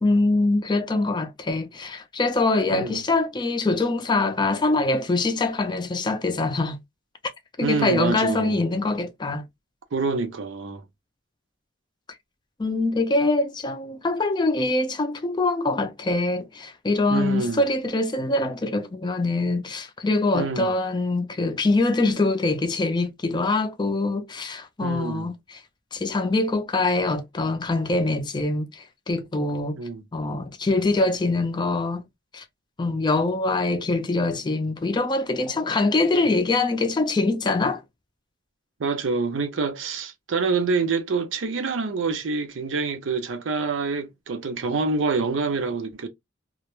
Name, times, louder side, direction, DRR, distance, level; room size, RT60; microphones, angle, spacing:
voice 1, 0.0-6.8 7.6-9.4 12.6-25.6 25.9-29.8 30.1-32.0 32.3-32.4 32.8-37.8, left 2 dB, 25° left, 0.4 m, -24 dB
voice 2, 2.7-3.0 7.6-8.6 9.9-10.8 17.1-17.7 20.3-20.7 24.8-25.3 29.8-30.0 38.8-46.1, right 4 dB, 85° right, 0.5 m, -26 dB
2.3 x 2.1 x 2.9 m
head